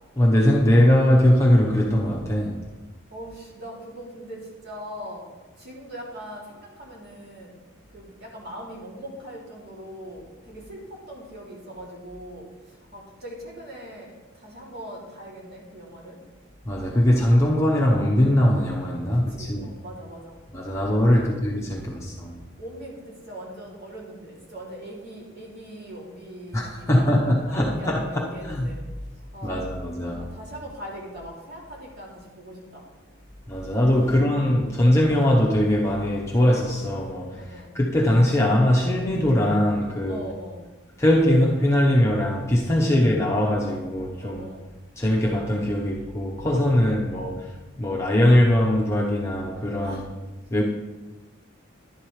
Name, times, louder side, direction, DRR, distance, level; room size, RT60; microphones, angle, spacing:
voice 1, 0.2-2.6 16.7-19.7 20.5-22.4 26.5-28.7 29.4-30.2 33.5-40.2 41.0-44.5 45.0-50.0 50.5-50.6, left 1 dB, 15° left, -3 dB, 0.9 m, -21 dB
voice 2, 3.1-5.3 5.6-7.6 7.9-16.2 19.1-20.4 20.7-20.8 21.1-21.4 21.7-22.0 22.6-28.8 29.3-32.8 33.9-34.2 34.6-34.8 37.4-37.7 40.1-40.6 42.8-43.0 44.2-44.6 49.8-50.1, equal, 50° right, -4 dB, 2.9 m, -41 dB
11.0 x 11.0 x 3.3 m, 1.2 s
head